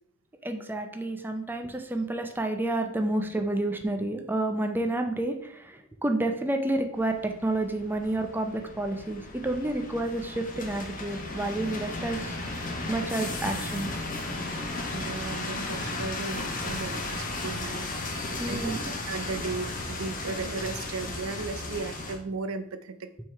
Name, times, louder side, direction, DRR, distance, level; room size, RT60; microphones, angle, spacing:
voice 1, 0.4-12.3 12.9-13.9 18.2-18.9, right 2 dB, 10° right, 5 dB, 0.5 m, -30 dB
sound 1, 6.9-22.2, left 2 dB, 40° left, 1.0 m, -35 dB
voice 2, 14.9-17.9 18.5-18.8 19.1-23.1, right 4 dB, 85° right, 11 dB, 0.5 m, -35 dB
5.7 x 3.7 x 4.6 m, 0.71 s
head